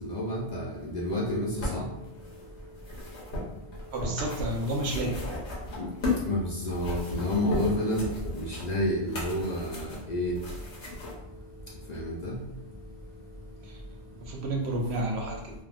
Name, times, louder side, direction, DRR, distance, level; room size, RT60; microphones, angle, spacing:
voice 1, 0.0-1.9 5.8-5.9 6.3-8.1 8.3-10.3 11.9-12.4, left 1 dB, 55° left, -4 dB, 0.5 m, -30 dB
sound 1, 1.1-6.3 6.6-11.1 11.9-12.0, left 2 dB, 85° left, 1.3 m, -35 dB
voice 2, 3.9-5.1 13.6-13.8 14.2-15.5, right 1 dB, 75° right, 0 dB, 0.9 m, -31 dB
3.3 x 2.2 x 2.5 m, 0.86 s
omnidirectional pair, 1.1 m